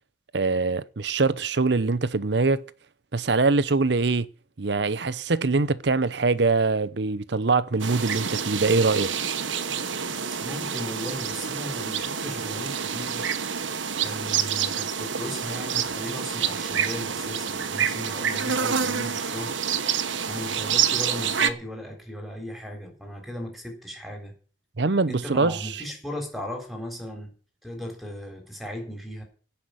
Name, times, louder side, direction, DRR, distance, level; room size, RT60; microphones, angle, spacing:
voice 1, 0.3-2.6 3.1-4.3 4.6-9.1 24.8-25.7, right 3 dB, 65° right, 0.8 m, -23 dB
sound 1, 7.8-21.5, right 7 dB, 85° right, 1.2 m, -28 dB
voice 2, 10.4-13.3 14.0-19.6 20.3-24.3 25.1-27.3 27.6-29.2, left 1 dB, ahead, 3.8 m, -36 dB
16.5 x 5.9 x 9.6 m
head